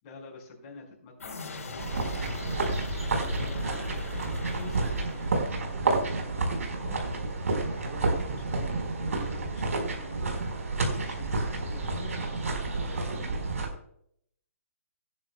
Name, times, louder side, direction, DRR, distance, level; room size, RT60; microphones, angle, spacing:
voice 1, 0.0-2.7 3.2-7.1 7.7-10.5 11.0-13.2, left 3 dB, 30° left, 0 dB, 5.0 m, -48 dB
sound 1, 1.2-5.9, left 5 dB, 80° left, 3.7 m, -40 dB
sound 2, 1.8-13.7, right 3 dB, 75° right, 4.3 m, -30 dB
18.0 x 10.5 x 2.3 m, 0.68 s
hypercardioid pair, 155°, 8 cm